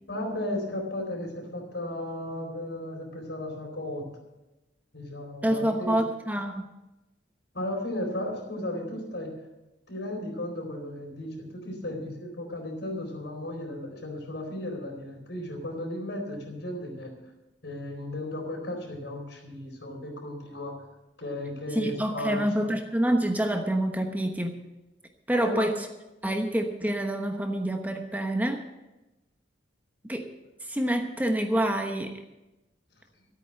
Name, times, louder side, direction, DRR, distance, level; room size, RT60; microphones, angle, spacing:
voice 1, 0.1-4.1 4.9-6.0 7.5-9.3 9.9-17.1 17.6-20.8 21.2-22.7 25.3-25.7, left 1 dB, 75° left, 2 dB, 4.3 m, -35 dB
voice 2, 5.4-6.7 21.7-24.6 25.3-25.9 26.2-28.6 30.1-30.3 30.6-32.1, right 1 dB, 10° right, 4 dB, 1.0 m, -27 dB
14.0 x 8.9 x 7.8 m, 1.0 s
head